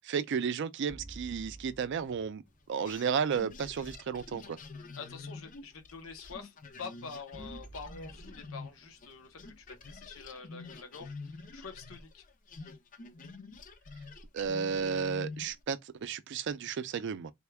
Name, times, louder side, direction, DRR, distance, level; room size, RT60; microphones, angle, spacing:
voice 1, 0.0-2.4 2.7-4.6 14.3-17.3, right 6 dB, 60° right, 0.4 m, -33 dB
sound 1, 0.9-3.1 7.3-10.5, right 2 dB, 25° right, 0.7 m, -52 dB
sound 2, 2.8-9.1 9.4-15.6, left 3 dB, 40° left, 0.5 m, -47 dB
voice 2, 5.0-12.2 12.6-12.7, left 5 dB, 75° left, 0.8 m, -46 dB
3.5 x 2.2 x 3.3 m
head